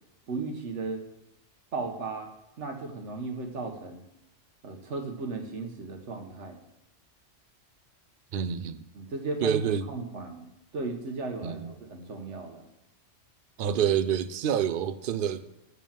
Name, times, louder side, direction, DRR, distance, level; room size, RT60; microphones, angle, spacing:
voice 1, 0.3-1.0 1.7-2.3 2.6-4.0 4.6-6.6 8.9-9.6 9.9-10.5 10.7-12.7, right 3 dB, 80° right, 1.4 m, -35 dB
voice 2, 8.3-8.8 9.4-9.9 11.4-11.7 13.6-15.4, right 8 dB, 55° right, 0.7 m, -27 dB
7.2 x 6.9 x 7.3 m
omnidirectional pair, 1.2 m